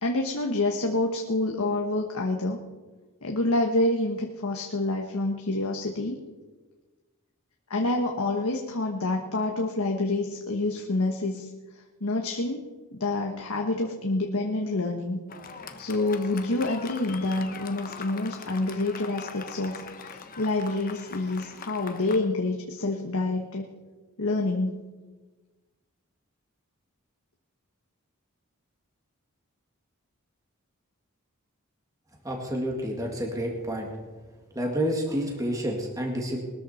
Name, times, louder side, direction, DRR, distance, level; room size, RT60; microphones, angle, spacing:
voice 1, 0.0-2.6 3.2-6.2 7.7-11.5 12.0-12.7 12.9-15.2 15.8-19.8 20.1-23.7 24.2-24.9, left 2 dB, 80° left, 2 dB, 1.4 m, -27 dB
Fireworks, 15.3-22.2, left 5 dB, 40° left, 1.1 m, -42 dB
voice 2, 32.2-33.9 34.5-36.4, equal, 15° right, 0 dB, 2.0 m, -29 dB
21.0 x 13.5 x 4.3 m, 1.3 s
head